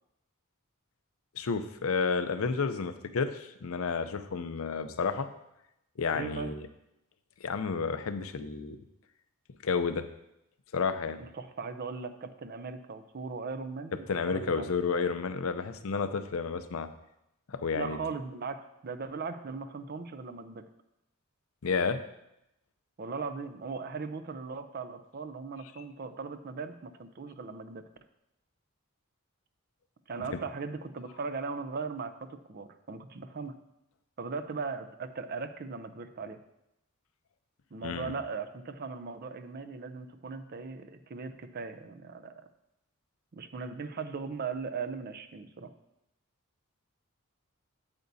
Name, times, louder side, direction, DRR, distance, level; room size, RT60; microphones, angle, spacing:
voice 1, 1.4-5.3 6.0-6.7 7.4-8.8 9.6-10.1 10.7-11.2 14.1-16.9 17.5-18.0 21.6-22.0 37.8-38.1, left 5 dB, 75° left, 10 dB, 0.6 m, -31 dB
voice 2, 6.1-6.5 11.2-14.7 17.7-20.7 23.0-27.8 30.1-33.6 34.2-36.4 37.7-42.3 43.3-45.7, right 4 dB, 45° right, 9 dB, 0.5 m, -38 dB
8.7 x 8.0 x 2.7 m, 0.85 s
head